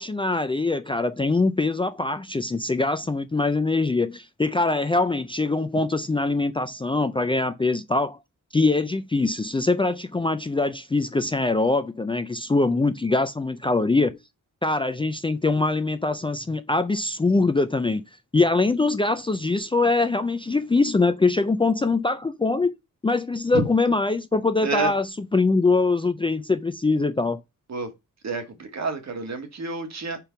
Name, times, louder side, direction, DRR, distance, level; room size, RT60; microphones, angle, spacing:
voice 1, 0.0-8.2 8.5-14.2 14.6-18.0 18.3-22.7 23.0-27.4, left 3 dB, 15° left, 0.4 m, -23 dB
voice 2, 28.2-30.2, right 3 dB, 60° right, 1.7 m, -29 dB
5.1 x 4.6 x 5.8 m
wide cardioid pair, 170°, 31 cm